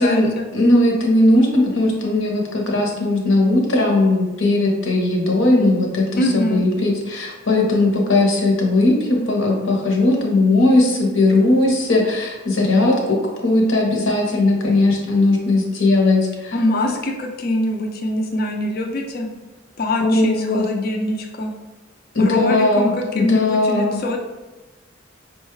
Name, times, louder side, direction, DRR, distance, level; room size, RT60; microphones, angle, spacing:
voice 1, 0.0-16.6 20.0-20.7 22.1-24.0, left 2 dB, 75° left, 0 dB, 0.9 m, -18 dB
voice 2, 6.2-6.6 16.5-19.3 19.8-21.5 22.2-24.2, left 1 dB, 50° left, 2 dB, 0.5 m, -23 dB
5.2 x 2.3 x 3.1 m, 1.1 s
head